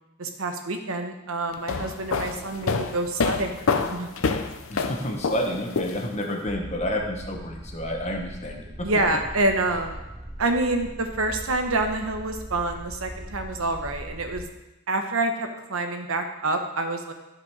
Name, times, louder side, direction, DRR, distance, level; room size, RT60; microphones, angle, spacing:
voice 1, 0.2-4.1 8.8-10.0 10.4-14.5 14.9-17.1, right 2 dB, 90° right, 5 dB, 1.0 m, -27 dB
sound 1, 1.5-6.4, left 4 dB, 80° left, 0.6 m, -27 dB
voice 2, 4.7-8.9, equal, 30° left, 2 dB, 1.1 m, -30 dB
sound 2, 6.5-14.5, right 1 dB, 15° right, 0.6 m, -40 dB
12.0 x 5.2 x 4.7 m, 1.0 s
head